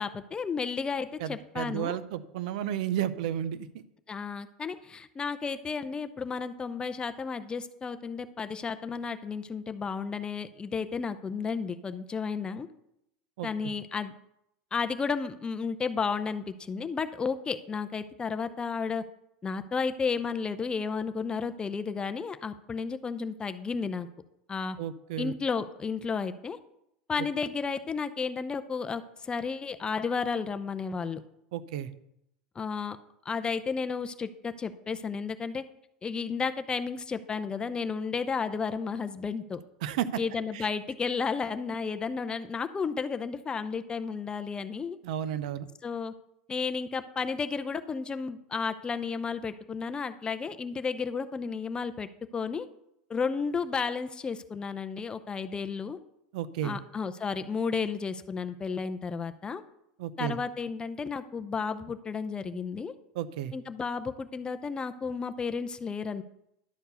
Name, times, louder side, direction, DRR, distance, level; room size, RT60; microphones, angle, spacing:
voice 1, 0.0-2.0 4.1-12.7 13.4-14.1 14.7-19.0 19.4-24.1 24.5-24.8 25.2-26.6 27.1-31.2 32.6-33.0 33.3-35.6 36.0-39.6 40.2-45.0 45.8-46.1 46.5-52.7 53.1-56.0 56.6-59.6 60.2-62.9 63.5-66.2, left 5 dB, 20° left, 10 dB, 0.5 m, -32 dB
voice 2, 1.2-3.7 13.4-13.5 24.8-25.3 31.5-31.9 39.8-40.2 40.5-40.7 45.0-45.7 56.3-56.8 60.0-60.4 63.1-63.5, right 10 dB, 75° right, 15 dB, 0.6 m, -32 dB
11.5 x 4.5 x 6.8 m, 0.80 s
supercardioid pair, 105°, 4 cm